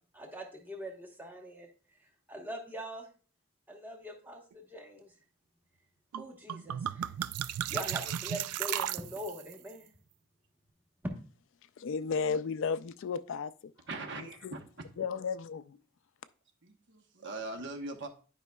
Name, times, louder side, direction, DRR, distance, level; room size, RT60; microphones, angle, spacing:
voice 1, 0.1-1.7 2.3-3.1 3.7-4.4 4.7-5.1 6.2-7.0 7.7-9.9, equal, 10° right, 1.1 m, -42 dB
sound 1, 6.1-6.2 6.5-9.5, right 11 dB, 85° right, 0.3 m, -35 dB
voice 2, 11.8-13.5 14.4-14.5 15.0-15.8, left 5 dB, 55° left, 0.3 m, -33 dB
voice 3, 13.9-14.6 16.6-18.1, right 2 dB, 55° right, 0.9 m, -41 dB
11.0 x 5.2 x 2.3 m
head